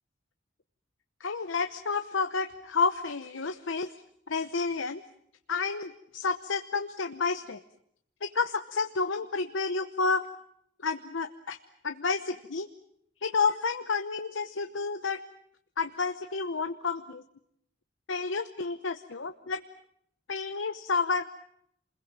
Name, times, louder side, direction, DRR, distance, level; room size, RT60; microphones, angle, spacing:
voice 1, 1.2-3.9 4.3-5.0 5.5-7.6 8.2-10.3 10.8-11.6 11.8-12.7 13.2-15.2 15.8-17.2 18.1-19.6 20.3-21.2, left 4 dB, 90° left, 8 dB, 1.0 m, -30 dB
28.5 x 21.5 x 7.5 m, 0.72 s
head